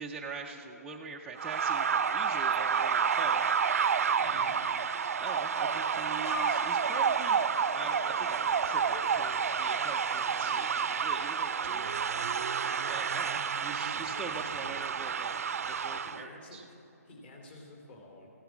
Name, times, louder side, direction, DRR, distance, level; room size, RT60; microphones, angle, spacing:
voice 1, 0.0-3.5 4.2-4.5 5.2-12.3 12.9-16.6, right 4 dB, 5° right, -4 dB, 0.3 m, -43 dB
sound 1, 1.4-16.2, right 6 dB, 60° right, 0.5 m, -30 dB
voice 2, 4.2-4.6 13.8-14.8 16.0-16.8 17.0-18.3, left 1 dB, 40° left, 1 dB, 2.5 m, -50 dB
sound 2, 6.2-14.4, left 2 dB, 65° left, 1.2 m, -47 dB
15.0 x 10.5 x 6.0 m, 2.9 s
hypercardioid pair, 160°, 9 cm